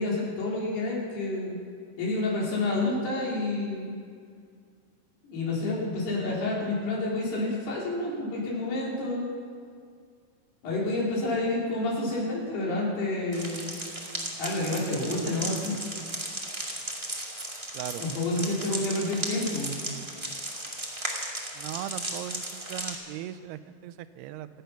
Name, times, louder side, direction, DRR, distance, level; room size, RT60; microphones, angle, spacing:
voice 1, 0.0-1.6 2.0-3.9 5.2-9.2 10.6-13.8 14.4-15.8 18.0-19.8, left 2 dB, 85° left, -4 dB, 5.8 m, -29 dB
sound 1, 13.3-22.9, right 1 dB, 20° right, 0.7 m, -36 dB
voice 2, 21.5-24.5, right 12 dB, 85° right, 13 dB, 2.6 m, -38 dB
27.0 x 9.3 x 5.8 m, 2.1 s
omnidirectional pair, 4.5 m